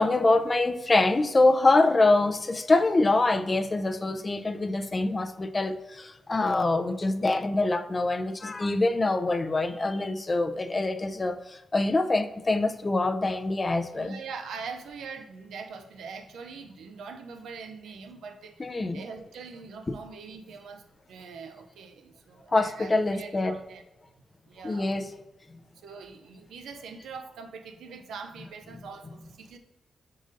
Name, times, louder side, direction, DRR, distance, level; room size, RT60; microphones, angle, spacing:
voice 1, 0.0-14.2 18.6-19.0 22.5-23.6 24.6-25.1, left 2 dB, 35° left, 8 dB, 0.4 m, -25 dB
voice 2, 14.0-23.8 24.4-25.0 25.7-29.6, right 5 dB, 80° right, 6 dB, 0.4 m, -43 dB
5.0 x 3.8 x 2.6 m, 1.0 s
supercardioid pair, 40°, 0 cm